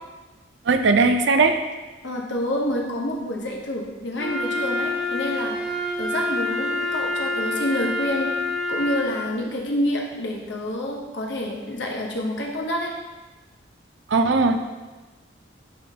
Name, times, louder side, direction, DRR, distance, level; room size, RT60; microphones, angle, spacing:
voice 1, 0.7-1.6 14.1-14.6, right 3 dB, 70° right, 7 dB, 0.4 m, -18 dB
voice 2, 2.0-8.3 8.7-12.9, left 1 dB, 70° left, 0 dB, 1.0 m, -28 dB
Wind instrument woodwind instrument, 4.2-9.3, left 2 dB, 85° left, 1.4 m, -27 dB
9.4 x 3.7 x 2.8 m, 1.2 s
head